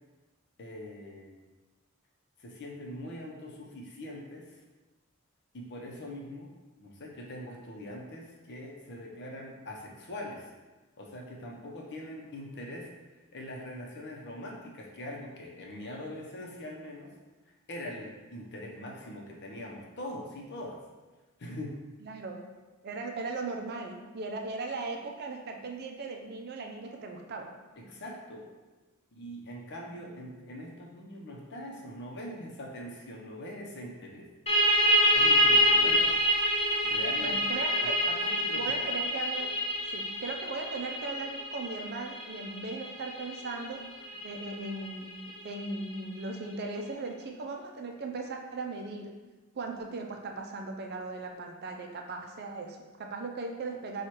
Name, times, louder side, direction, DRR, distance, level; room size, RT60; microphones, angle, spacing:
voice 1, 0.6-1.4 2.4-4.5 5.5-6.5 6.8-10.5 11.0-12.9 13.3-17.1 17.7-20.8 21.4-21.8 27.8-28.5 29.1-34.3 35.1-36.2 36.6-37.4 38.1-38.7, left 1 dB, 55° left, -1 dB, 0.8 m, -42 dB
voice 2, 22.0-22.4 22.8-27.5 35.9-36.2 37.2-38.0 38.6-39.6 39.9-43.8 44.2-49.2 49.5-54.1, right 3 dB, 50° right, 2 dB, 0.5 m, -38 dB
sound 1, 34.5-45.8, equal, 30° left, 1.2 m, -27 dB
4.6 x 2.4 x 4.4 m, 1.2 s
head